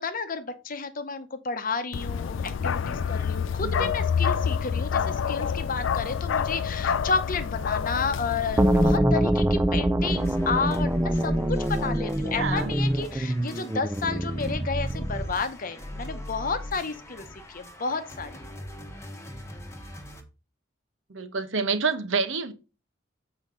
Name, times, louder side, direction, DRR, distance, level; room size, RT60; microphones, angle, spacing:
voice 1, 0.0-18.4, left 4 dB, 45° left, 0.8 m, -31 dB
Bark, 1.9-9.0, left 7 dB, 75° left, 0.4 m, -28 dB
sound 1, 8.6-15.5, right 1 dB, 10° right, 0.4 m, -25 dB
sound 2, 10.0-20.2, left 1 dB, 15° left, 1.0 m, -41 dB
voice 2, 12.4-12.7 21.1-22.5, right 4 dB, 75° right, 0.9 m, -28 dB
7.2 x 5.1 x 3.8 m
head